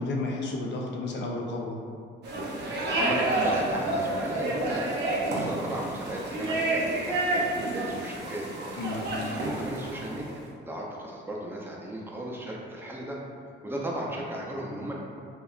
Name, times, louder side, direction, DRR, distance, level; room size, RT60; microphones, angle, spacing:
voice 1, 0.0-1.8 8.8-9.1, left 2 dB, 65° left, -1 dB, 0.5 m, -32 dB
sound 1, 2.2-10.3, right 2 dB, 60° right, 0.6 m, -29 dB
voice 2, 2.6-5.0 5.3-8.5 8.7-8.9 9.3-13.2 13.6-14.9, right 1 dB, 10° right, -3 dB, 0.4 m, -36 dB
2.7 x 2.2 x 2.4 m, 2.2 s
cardioid pair, 90°, 20 cm